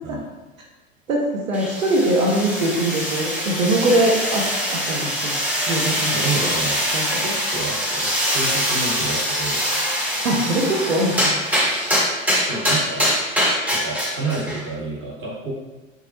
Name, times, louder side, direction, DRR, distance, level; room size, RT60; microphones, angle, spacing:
voice 1, 1.1-5.3 5.7-6.4 6.9-7.2 10.2-11.3, right 1 dB, 85° right, -2 dB, 0.6 m, -22 dB
sound 1, 1.5-14.7, equal, 5° right, 0.5 m, -23 dB
voice 2, 6.1-6.8 7.2-9.6 12.4-13.1 13.7-15.5, right 3 dB, 30° right, -4 dB, 1.0 m, -29 dB
3.6 x 2.0 x 2.7 m, 1.2 s
figure-of-eight pair, 85°, 40 cm